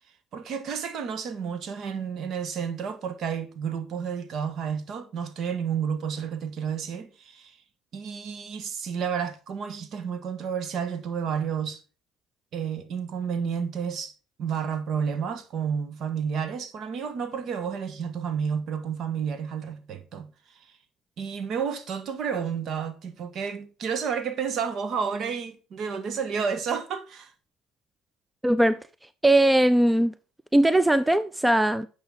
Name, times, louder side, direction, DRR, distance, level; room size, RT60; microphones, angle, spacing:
voice 1, 0.3-7.5 7.9-11.8 12.5-14.1 14.4-20.3 21.2-27.3, right 7 dB, 55° right, 1.4 m, -31 dB
voice 2, 28.4-28.8 29.2-30.1 30.5-31.9, right 1 dB, 10° right, 0.5 m, -20 dB
10.5 x 6.1 x 3.9 m
hypercardioid pair, 65°, 0 cm